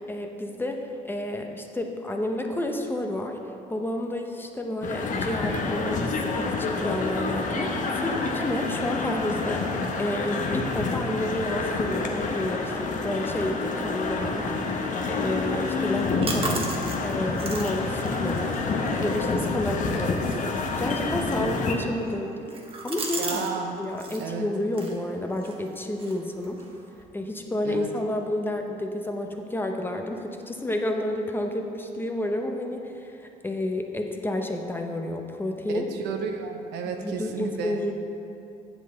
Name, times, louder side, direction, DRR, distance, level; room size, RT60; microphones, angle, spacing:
voice 1, 0.0-3.4 3.7-6.1 6.4-9.6 10.0-22.4 22.8-23.5 23.8-26.6 27.1-35.9 36.8-37.9, left 1 dB, 10° left, 3 dB, 0.7 m, -30 dB
sound 1, 4.8-21.8, left 3 dB, 50° left, 0.9 m, -28 dB
sound 2, 15.8-23.5 23.8-24.3 24.7-27.0, right 3 dB, 35° right, 1.1 m, -38 dB
voice 2, 23.2-23.8 24.2-24.5 27.6-27.9 35.7-37.8, right 5 dB, 85° right, 4 dB, 0.8 m, -32 dB
8.0 x 7.5 x 3.8 m, 2.7 s
cardioid pair, 110°, 17 cm